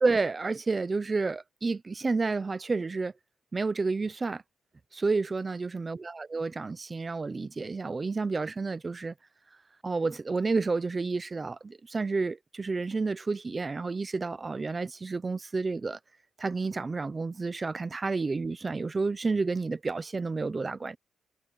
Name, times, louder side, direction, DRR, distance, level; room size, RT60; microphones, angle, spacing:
voice 1, 0.0-3.1 3.5-4.4 4.9-9.1 9.8-16.0 16.4-21.0, right 3 dB, 20° right, 0.6 m, -30 dB
cardioid pair, 165°, 0 cm